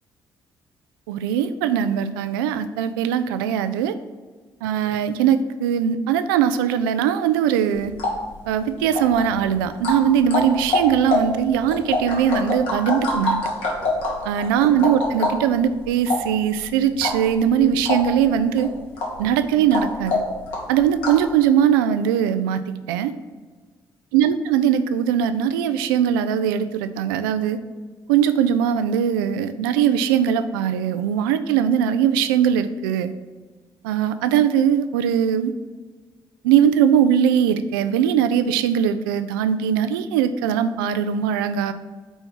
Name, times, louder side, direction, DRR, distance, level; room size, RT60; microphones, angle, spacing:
voice 1, 1.1-4.0 4.6-7.9 8.5-13.4 14.3-18.7 19.2-20.2 20.7-23.1 24.1-27.6 28.1-33.1 33.8-35.5 36.4-41.7, right 8 dB, 75° right, 11 dB, 0.4 m, -20 dB
sound 1, 7.7-21.3, left 2 dB, 75° left, 1.3 m, -27 dB
5.5 x 4.4 x 6.0 m, 1.4 s
figure-of-eight pair, 45°, 12 cm